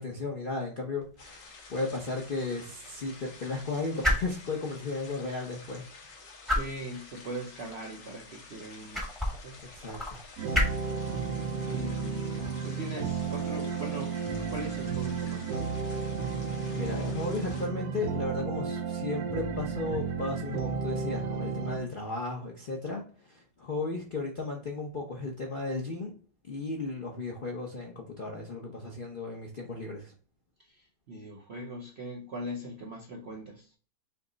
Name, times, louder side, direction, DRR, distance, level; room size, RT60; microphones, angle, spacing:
voice 1, 0.0-1.4 1.7-5.8 9.7-10.0 12.0-12.2 16.7-26.1 26.4-30.1, left 3 dB, 50° left, -1 dB, 0.6 m, -35 dB
sound 1, 1.0-14.6, left 1 dB, ahead, 0.7 m, -36 dB
sound 2, 1.2-17.7, left 4 dB, 80° left, 1.9 m, -50 dB
voice 2, 6.5-9.6 11.7-12.3 12.6-15.9 30.6-33.7, right 1 dB, 60° right, -1 dB, 0.7 m, -41 dB
sound 3, 10.4-21.8, right 5 dB, 80° right, 1.3 m, -33 dB
5.7 x 2.0 x 3.8 m, 0.41 s
omnidirectional pair, 1.9 m